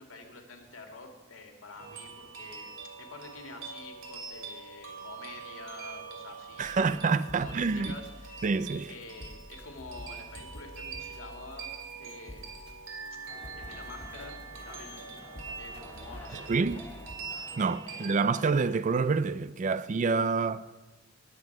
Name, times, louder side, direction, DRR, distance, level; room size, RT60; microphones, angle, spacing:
voice 1, 0.0-2.7 3.0-8.5 8.9-12.5 13.5-14.4 14.6-15.2 15.6-16.6 17.9-18.3, left 3 dB, 80° left, 2.2 m, -48 dB
sound 1, 1.8-18.7, right 5 dB, 70° right, 2.6 m, -44 dB
sound 2, 6.6-17.2, equal, 60° left, 1.7 m, -49 dB
voice 2, 6.6-7.9 8.4-8.9 16.3-16.8 17.6-20.6, right 4 dB, 35° right, 0.4 m, -27 dB
sound 3, 13.3-18.7, left 1 dB, 10° left, 0.8 m, -52 dB
19.5 x 8.0 x 4.8 m
head